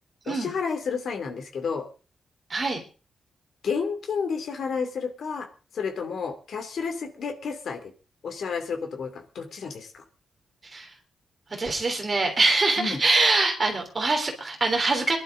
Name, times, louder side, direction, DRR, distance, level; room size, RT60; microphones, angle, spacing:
voice 1, 0.3-1.9 3.6-5.5 5.7-7.9 8.2-10.0 12.8-13.0, left 5 dB, 65° left, 5 dB, 2.8 m, -31 dB
voice 2, 11.5-15.2, right 3 dB, 25° right, 2 dB, 3.5 m, -23 dB
22.5 x 11.5 x 3.9 m, 0.36 s
wide cardioid pair, 160°, 0 cm